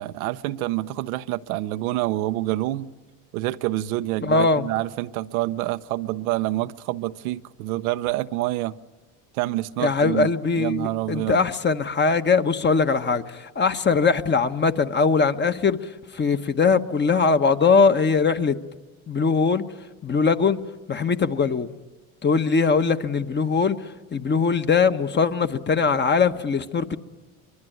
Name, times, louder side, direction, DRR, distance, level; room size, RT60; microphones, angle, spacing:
voice 1, 0.0-2.9 3.3-8.7 9.3-10.3 10.6-11.4, right 16 dB, 90° right, 1.0 m, -27 dB
voice 2, 4.2-4.7 9.8-15.8 16.1-18.6 19.1-19.6 20.0-20.6 20.9-21.7 22.2-23.8 24.1-27.0, left 5 dB, 25° left, 1.3 m, -21 dB
24.0 x 23.0 x 9.3 m
supercardioid pair, 100°, 41 cm